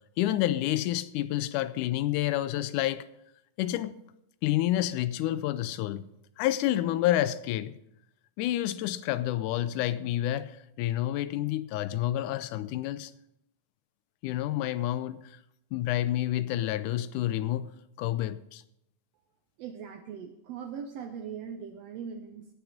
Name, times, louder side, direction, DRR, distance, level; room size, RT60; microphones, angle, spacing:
voice 1, 0.2-3.1 3.6-4.0 4.4-6.1 6.4-7.7 8.4-13.1 14.2-15.4 15.7-18.6, left 14 dB, 85° left, 2.0 m, -29 dB
voice 2, 19.6-22.5, right 7 dB, 75° right, 1.5 m, -40 dB
16.5 x 6.2 x 5.0 m
omnidirectional pair, 3.6 m